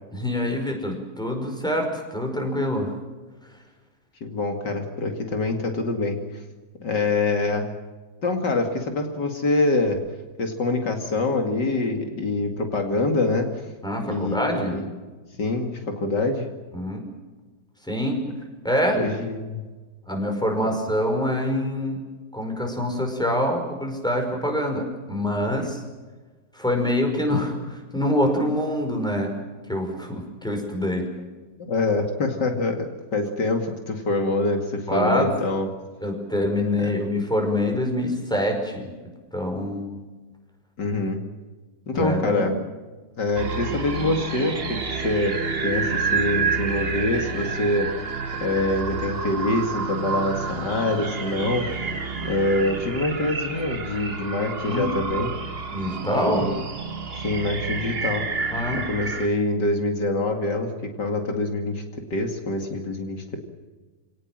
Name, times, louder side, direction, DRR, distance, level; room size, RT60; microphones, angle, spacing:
voice 1, 0.1-2.9 13.8-14.8 16.7-17.0 17.9-18.2 18.6-19.0 20.0-22.0 22.3-25.8 26.5-29.3 29.7-31.1 34.9-35.3 36.0-38.9 39.3-39.9 41.9-42.4 54.6-54.9 55.7-56.5 58.5-58.8, left 1 dB, ahead, 3 dB, 5.3 m, -25 dB
voice 2, 4.2-6.2 6.8-7.7 8.2-10.0 10.4-13.5 13.9-14.8 15.4-16.5 18.9-19.6 31.6-35.7 36.8-36.9 40.8-41.2 41.9-42.6 43.2-45.4 45.6-47.9 48.4-51.7 52.2-55.3 56.0-56.5 57.2-58.2 58.7-61.8 62.1-63.4, left 2 dB, 70° left, 4 dB, 2.9 m, -25 dB
sound 1, 43.4-59.3, right 5 dB, 35° right, 1.6 m, -29 dB
28.5 x 18.5 x 7.6 m, 1.3 s
omnidirectional pair, 1.9 m